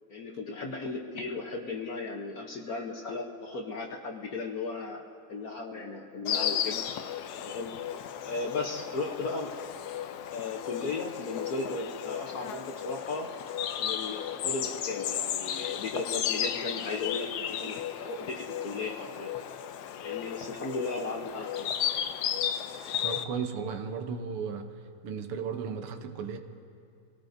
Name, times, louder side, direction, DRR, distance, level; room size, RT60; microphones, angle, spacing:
voice 1, 0.1-5.0 5.3-7.1 7.4-7.8 8.2-9.5 10.3-13.3 13.8-19.3 20.0-21.8, left 3 dB, 55° left, 1 dB, 1.0 m, -36 dB
Insect, 6.3-23.2, left 9 dB, 85° left, 0.8 m, -34 dB
voice 2, 23.0-24.7 25.0-26.4, right 6 dB, 85° right, 7 dB, 1.8 m, -35 dB
26.5 x 18.0 x 2.6 m, 2.5 s
omnidirectional pair, 2.4 m